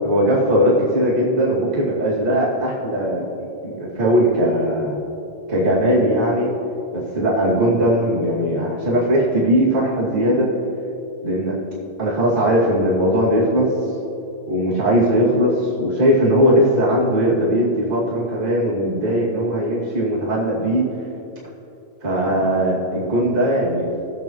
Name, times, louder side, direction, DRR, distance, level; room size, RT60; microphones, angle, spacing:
voice 1, 0.0-3.2 3.6-5.0 5.5-6.5 6.9-10.5 11.2-11.6 12.0-13.7 14.5-20.9 22.0-23.9, equal, 15° right, -7 dB, 1.4 m, -19 dB
18.0 x 7.4 x 3.1 m, 2.8 s
omnidirectional pair, 4.3 m